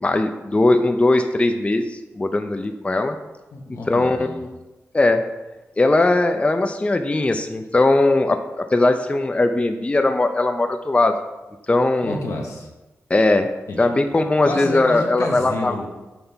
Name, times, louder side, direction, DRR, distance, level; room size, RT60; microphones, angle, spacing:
voice 1, 0.0-3.2 3.9-4.5 4.9-5.2 5.8-11.1 11.7-12.2 13.1-13.5 13.8-15.7, left 2 dB, 25° left, 6 dB, 0.4 m, -19 dB
voice 2, 3.5-4.4 12.0-12.7 13.7-14.0 14.4-15.9, left 2 dB, 80° left, 0 dB, 1.0 m, -29 dB
5.8 x 3.3 x 5.6 m, 1.1 s
cardioid pair, 60°, 5 cm